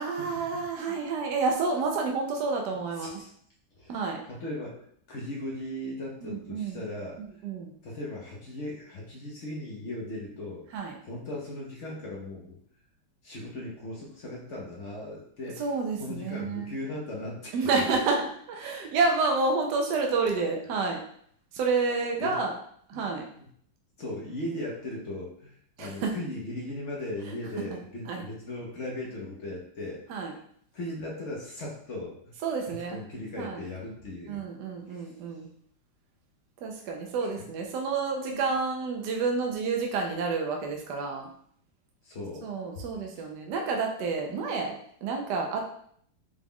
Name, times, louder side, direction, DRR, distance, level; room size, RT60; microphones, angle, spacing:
voice 1, 0.0-3.2 3.9-4.2 6.2-6.8 7.2-7.7 10.7-11.0 15.6-16.8 17.5-21.0 21.5-22.5 22.9-23.3 25.8-26.1 28.0-28.2 30.1-30.3 32.4-33.0 33.4-33.6 34.3-35.5 36.6-41.3 42.4-45.7, right 4 dB, 70° right, 2 dB, 1.0 m, -29 dB
voice 2, 3.0-3.3 3.8-4.0 4.3-7.2 7.8-10.7 11.0-12.6 13.2-15.7 16.0-17.8 22.2-22.4 22.9-23.0 23.4-23.5 24.0-30.2 30.7-32.3 32.7-34.4 34.9-35.1 37.2-37.3 38.3-38.4 42.0-42.5, left 1 dB, 55° left, -2 dB, 0.8 m, -38 dB
4.9 x 2.3 x 3.6 m, 0.63 s
omnidirectional pair, 2.2 m